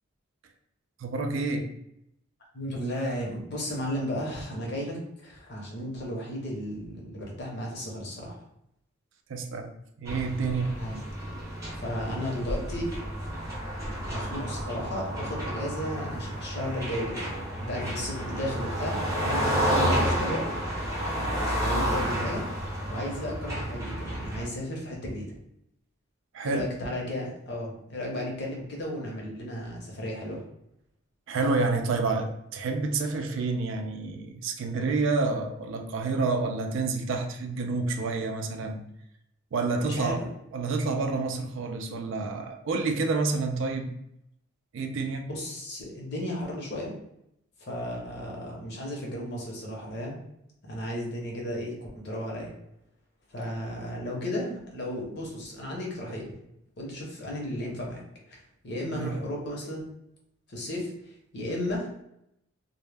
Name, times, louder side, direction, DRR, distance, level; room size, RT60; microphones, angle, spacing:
voice 1, 1.0-1.7 9.3-9.7 10.0-10.8 26.3-26.7 31.3-38.8 39.5-40.2 40.5-43.9 44.7-45.3 58.8-59.2, right 3 dB, 65° right, 5 dB, 0.3 m, -29 dB
voice 2, 2.5-8.4 10.8-11.0 11.8-12.9 14.1-17.3 17.6-20.5 21.0-22.5 22.9-25.4 26.4-30.4 39.8-40.3 45.3-46.9 47.6-50.2 50.6-52.5 53.3-56.3 56.8-58.0 58.3-59.9 60.5-61.9, equal, 55° left, -1 dB, 0.7 m, -34 dB
sound 1, 10.0-24.4, equal, 15° right, 0.7 m, -30 dB
2.1 x 2.1 x 3.2 m, 0.78 s
head